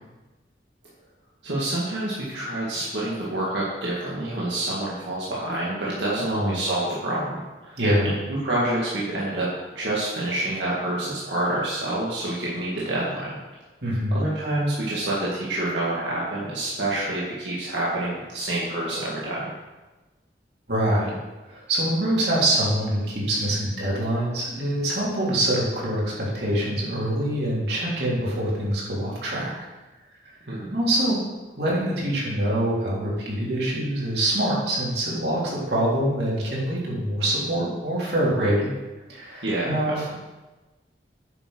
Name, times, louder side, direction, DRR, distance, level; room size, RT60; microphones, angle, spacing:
voice 1, 1.4-7.8 8.0-9.5 9.7-13.3 14.1-19.5 30.5-30.7 39.4-40.0, right 1 dB, 85° right, -7 dB, 2.2 m, -27 dB
voice 2, 7.8-8.1 13.8-14.2 20.7-21.1 21.5-29.5 30.7-31.2 31.6-38.8 39.1-40.1, right 1 dB, 70° right, -6 dB, 3.6 m, -25 dB
9.6 x 6.2 x 6.3 m, 1.2 s
head